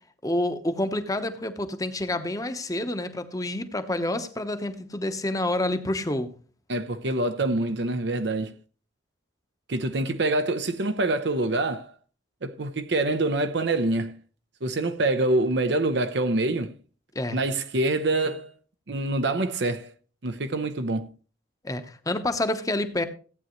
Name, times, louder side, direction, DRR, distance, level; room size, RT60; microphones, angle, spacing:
voice 1, 0.2-6.3 17.1-17.4 21.6-23.0, left 1 dB, 20° left, 1.0 m, -28 dB
voice 2, 6.7-8.5 9.7-11.9 12.4-14.2 14.6-16.7 17.3-18.5 18.9-19.9 20.2-21.1, right 2 dB, 65° right, 0.8 m, -25 dB
15.0 x 9.0 x 3.1 m
head